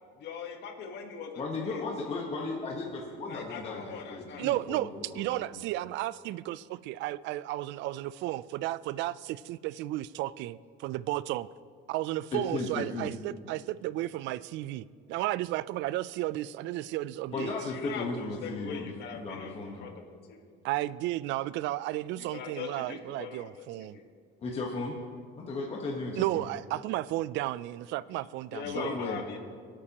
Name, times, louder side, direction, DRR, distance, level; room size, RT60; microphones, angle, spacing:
voice 1, 0.2-2.2 3.3-4.5 17.3-20.5 22.2-24.0 28.5-29.4, left 6 dB, 60° left, 4 dB, 1.4 m, -41 dB
voice 2, 1.4-5.6 12.3-13.1 17.3-19.9 24.4-24.9 25.4-26.4 28.6-29.2, left 3 dB, 30° left, -1 dB, 1.2 m, -35 dB
voice 3, 4.4-10.6 10.8-11.5 11.9-17.5 20.6-24.0 26.2-29.0, right 15 dB, 65° right, 18 dB, 0.4 m, -33 dB
25.5 x 8.6 x 2.9 m, 2.1 s
cardioid pair, 140°, 20 cm